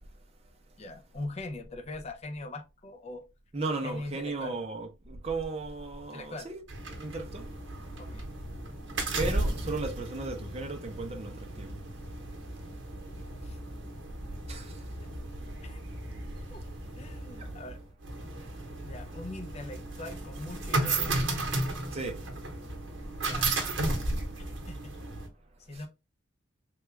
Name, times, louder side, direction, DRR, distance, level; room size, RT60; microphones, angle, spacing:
voice 1, 0.8-3.2 3.8-4.6 6.1-6.5 8.0-8.3 13.4-13.6 15.6-15.8 16.5-16.6 17.0-17.8 18.8-21.1 23.2-23.5 23.8-24.1 24.4-24.9 25.6-25.9, left 2 dB, 30° left, 0.5 m, -41 dB
voice 2, 3.5-6.6 6.9-7.5 9.1-11.8 14.5-14.8 17.4-17.5 21.9-22.2 25.7-25.8, right 3 dB, 30° right, 0.6 m, -35 dB
sound 1, 6.7-25.3, right 2 dB, 65° right, 0.9 m, -35 dB
3.4 x 2.3 x 3.1 m
head